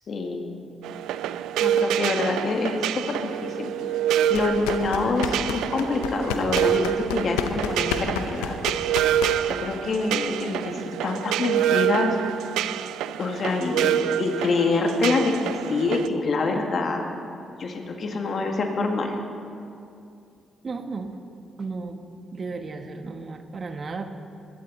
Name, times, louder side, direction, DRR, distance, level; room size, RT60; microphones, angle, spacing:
voice 1, 0.1-0.5 1.6-3.7 4.3-8.6 9.5-12.2 13.2-17.0 17.6-19.2, left 3 dB, 55° left, 3 dB, 2.0 m, -26 dB
sound 1, 0.8-16.1, right 11 dB, 80° right, 0.3 m, -27 dB
sound 2, 4.3-9.7, left 7 dB, 90° left, 0.7 m, -32 dB
voice 2, 20.6-21.2 21.6-22.0 22.3-24.2, right 4 dB, 45° right, 7 dB, 1.2 m, -34 dB
21.0 x 12.5 x 4.1 m, 2.5 s
hypercardioid pair, 50°, 0 cm